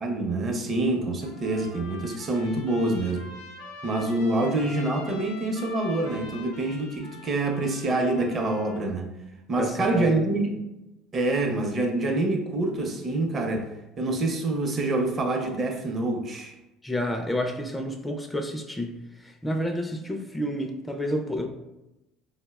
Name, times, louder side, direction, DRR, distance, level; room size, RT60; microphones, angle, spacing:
voice 1, 0.0-3.3 3.8-9.1 9.5-10.6 11.1-13.7 14.0-16.5, right 2 dB, 35° right, 2 dB, 0.6 m, -26 dB
Trumpet, 1.2-8.8, left 4 dB, 85° left, 0.5 m, -44 dB
voice 2, 9.6-10.1 16.8-21.5, equal, 10° left, 3 dB, 0.3 m, -30 dB
3.9 x 2.0 x 2.3 m, 0.97 s
supercardioid pair, 85°, 0 cm